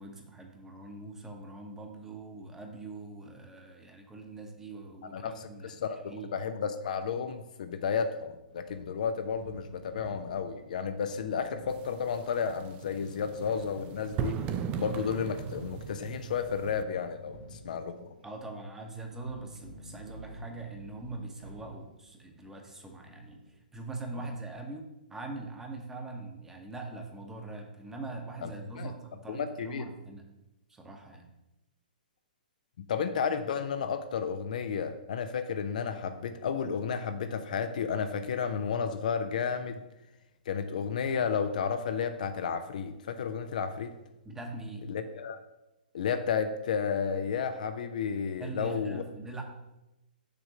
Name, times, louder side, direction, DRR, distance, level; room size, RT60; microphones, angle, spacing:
voice 1, 0.0-5.7 6.1-6.3 18.2-23.4 23.7-30.2 30.7-31.3 44.2-44.9 48.4-49.4, right 2 dB, 10° right, 3 dB, 1.0 m, -42 dB
voice 2, 5.1-14.4 14.8-18.1 28.4-28.5 28.8-28.9 29.3-29.9 32.8-39.8 40.5-43.9 44.9-45.4 45.9-49.0, left 6 dB, 55° left, 8 dB, 0.5 m, -32 dB
sound 1, 8.5-23.5, right 1 dB, 80° right, 2.3 m, -52 dB
sound 2, 11.7-16.8, right 8 dB, 25° right, 0.4 m, -38 dB
6.6 x 3.6 x 6.2 m, 0.96 s
figure-of-eight pair, 115°, 5 cm